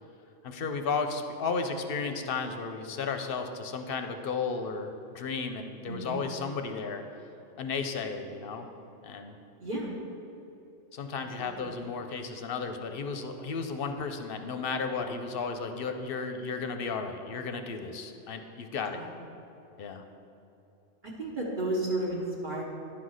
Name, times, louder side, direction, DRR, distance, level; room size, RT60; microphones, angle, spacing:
voice 1, 0.4-7.0 7.6-8.7 9.0-9.3 10.9-19.0 19.8-20.0, left 4 dB, 60° left, 6 dB, 0.7 m, -34 dB
voice 2, 5.9-6.2 9.6-9.9 11.4-11.8 18.9-19.1 21.2-22.6, right 1 dB, 45° right, -4 dB, 1.2 m, -33 dB
10.5 x 4.0 x 6.3 m, 2.9 s
omnidirectional pair, 1.2 m